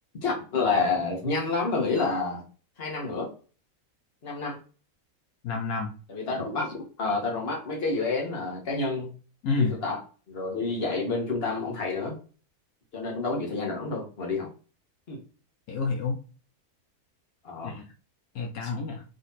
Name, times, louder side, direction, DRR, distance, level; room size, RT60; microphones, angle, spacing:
voice 1, 0.2-2.4 2.8-3.3 4.2-4.6 6.1-9.1 9.5-10.0 10.3-12.2 12.9-14.5 15.1-15.2 17.4-17.8, left 3 dB, 40° left, 0 dB, 1.5 m, -29 dB
voice 2, 5.4-5.9 9.4-9.8 15.7-16.2 17.6-17.8 18.3-19.0, left 4 dB, 75° left, 2 dB, 1.2 m, -28 dB
3.9 x 3.3 x 4.0 m, 0.37 s
omnidirectional pair, 1.6 m